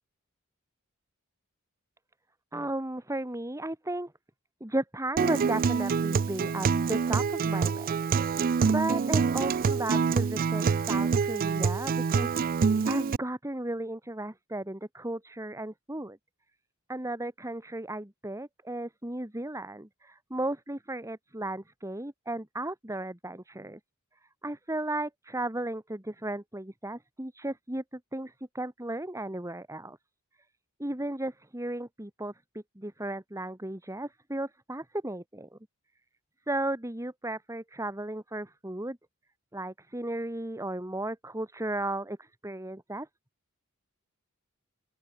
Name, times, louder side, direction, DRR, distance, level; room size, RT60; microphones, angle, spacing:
voice 1, 2.5-4.1 4.6-8.0 8.3-16.2 16.9-23.8 24.4-30.0 30.8-35.5 36.5-39.0 39.5-43.1, right 1 dB, 15° right, 2.2 m, -35 dB
Acoustic guitar, 5.2-13.2, right 5 dB, 40° right, 0.4 m, -26 dB
open air
head